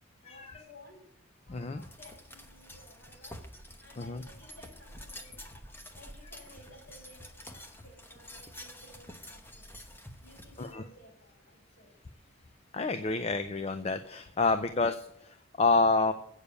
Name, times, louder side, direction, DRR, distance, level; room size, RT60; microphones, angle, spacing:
voice 1, 0.2-1.1 1.5-3.5 3.8-5.4 5.8-9.7 10.2-12.0, left 1 dB, 55° left, -1 dB, 5.0 m, -56 dB
voice 2, 1.5-1.8 4.0-4.2 10.6-10.8 12.7-16.1, left 3 dB, 30° left, 10 dB, 0.4 m, -28 dB
sound 1, 1.8-10.8, left 1 dB, 10° left, 0.9 m, -49 dB
8.2 x 6.9 x 8.1 m, 0.73 s
head